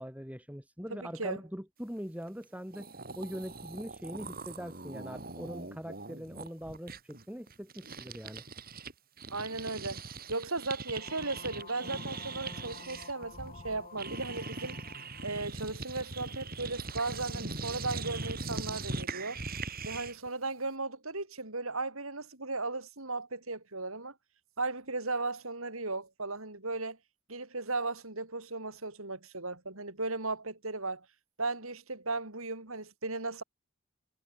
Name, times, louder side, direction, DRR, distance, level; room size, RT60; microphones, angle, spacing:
voice 1, 0.0-2.9 3.2-8.4, equal, 5° right, 6.0 m, -42 dB
voice 2, 0.9-1.4 9.3-10.0 10.3-14.8 15.2-19.4 19.8-24.1 24.6-27.0 27.3-31.1 31.4-33.4, right 3 dB, 70° right, 5.5 m, -36 dB
sound 1, 2.4-2.5 2.7-8.9 9.2-20.3, right 3 dB, 40° right, 6.4 m, -41 dB
sound 2, 10.9-15.4, left 4 dB, 30° left, 5.4 m, -51 dB
head